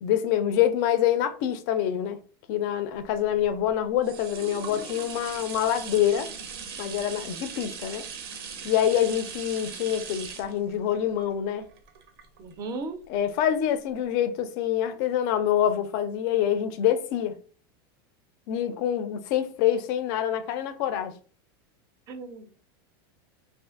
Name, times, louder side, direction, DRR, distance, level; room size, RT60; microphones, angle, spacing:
voice 1, 0.0-2.2 2.5-6.3 6.8-8.1 8.6-11.7 13.1-17.4 18.5-21.2, left 10 dB, 55° left, 0.4 m, -26 dB
sound 1, 3.1-12.8 13.3-13.4, right 6 dB, 85° right, 0.6 m, -40 dB
voice 2, 12.4-13.0 22.1-22.6, right 3 dB, 30° right, 0.4 m, -36 dB
2.5 x 2.5 x 2.4 m
supercardioid pair, 150°, 13 cm